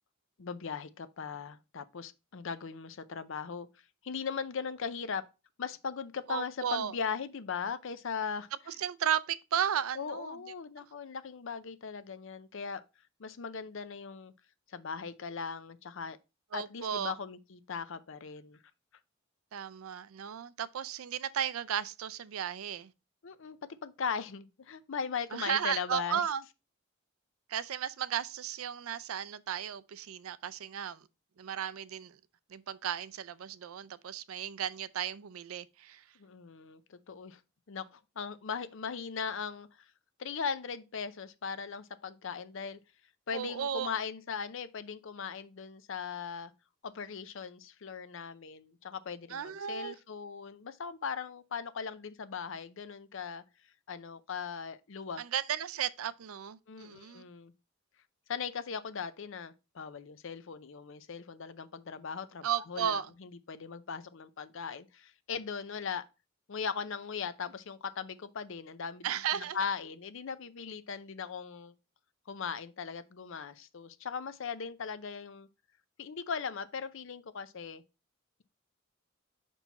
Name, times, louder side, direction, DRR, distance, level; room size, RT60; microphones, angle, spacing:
voice 1, 0.4-3.7 4.0-5.2 5.6-8.5 10.0-12.8 13.2-14.3 14.7-16.2 16.5-18.6 23.2-26.2 36.2-37.4 37.7-39.8 40.2-42.8 43.3-46.5 46.8-53.4 53.9-55.2 56.7-57.5 58.3-66.1 66.5-69.1 69.5-71.7 72.3-75.5 76.0-77.8, left 6 dB, 65° left, 0.6 m, -39 dB
voice 2, 6.3-6.9 8.7-10.5 16.5-17.1 19.5-22.9 25.3-26.4 27.5-31.0 31.4-32.2 32.5-36.0 43.3-43.9 49.3-50.0 55.2-57.2 62.4-63.1 69.0-69.6, right 9 dB, 85° right, 0.4 m, -35 dB
5.7 x 4.5 x 4.0 m
head